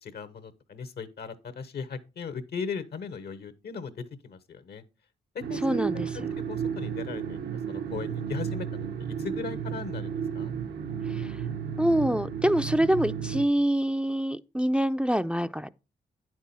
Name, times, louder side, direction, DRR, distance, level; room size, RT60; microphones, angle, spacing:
voice 1, 0.0-4.8 5.3-5.8 6.5-7.4 7.7-10.5, left 5 dB, 65° left, 1.1 m, -38 dB
sound 1, 5.4-13.5, right 7 dB, 70° right, 0.8 m, -33 dB
voice 2, 5.6-6.3 11.0-11.4 11.8-15.7, right 1 dB, 5° right, 0.4 m, -26 dB
9.6 x 6.1 x 4.2 m
supercardioid pair, 45°, 18 cm